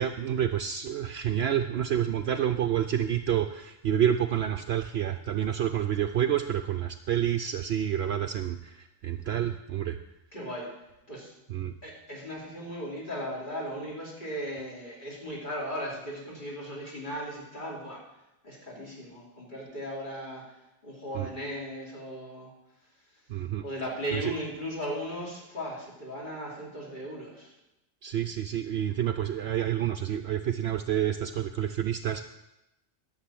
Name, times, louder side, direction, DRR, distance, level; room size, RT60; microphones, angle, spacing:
voice 1, 0.0-10.0 11.5-11.7 21.1-21.3 23.3-23.6 24.1-24.3 28.0-32.2, right 10 dB, 65° right, 8 dB, 0.7 m, -28 dB
voice 2, 10.3-10.7 11.1-11.3 11.8-18.0 18.4-20.4 20.8-22.5 23.6-27.5, equal, 40° left, -4 dB, 3.4 m, -37 dB
12.0 x 6.7 x 7.5 m, 0.92 s
omnidirectional pair, 1.3 m